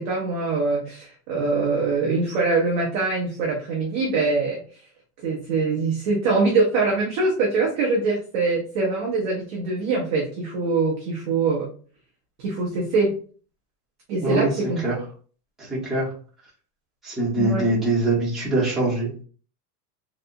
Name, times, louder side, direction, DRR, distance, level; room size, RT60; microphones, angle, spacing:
voice 1, 0.0-4.6 5.2-11.7 12.4-13.1 14.1-14.8 17.4-17.7, right 3 dB, 30° right, -2 dB, 0.4 m, -23 dB
voice 2, 15.6-16.1 17.0-19.2, right 2 dB, ahead, -9 dB, 0.8 m, -23 dB
3.3 x 2.8 x 2.4 m, 0.42 s
supercardioid pair, 170°, 47 cm